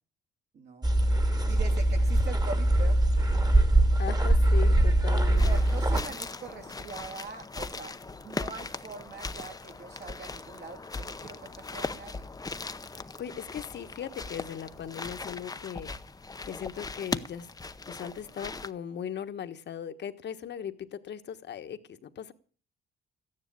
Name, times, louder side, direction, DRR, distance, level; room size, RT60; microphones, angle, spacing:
voice 1, 0.5-0.9 1.5-3.0 5.4-12.3, right 4 dB, 55° right, 5 dB, 3.2 m, -43 dB
sound 1, 0.8-6.0, right 1 dB, 20° right, 1.8 m, -22 dB
voice 2, 4.0-5.6 13.2-15.9 16.4-17.5 17.9-22.3, left 8 dB, 60° left, 11 dB, 1.3 m, -38 dB
sound 2, 5.4-18.7, left 3 dB, 20° left, 0.8 m, -39 dB
14.0 x 10.0 x 8.6 m, 0.43 s
cardioid pair, 90°, 20 cm